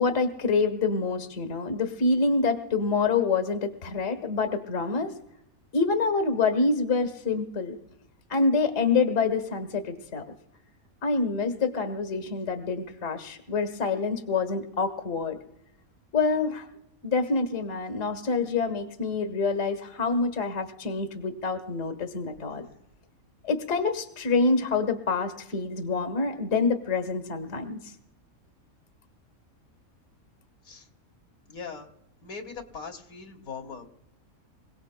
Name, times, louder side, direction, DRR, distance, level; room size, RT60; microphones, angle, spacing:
voice 1, 0.0-5.1 5.7-7.8 8.3-10.2 11.0-15.4 16.1-16.7 17.0-22.6 23.4-27.9, left 4 dB, 60° left, 7 dB, 1.6 m, -26 dB
voice 2, 31.5-31.9 32.2-33.9, left 5 dB, 80° left, 2 dB, 1.9 m, -40 dB
27.0 x 17.5 x 2.2 m, 0.84 s
omnidirectional pair, 1.5 m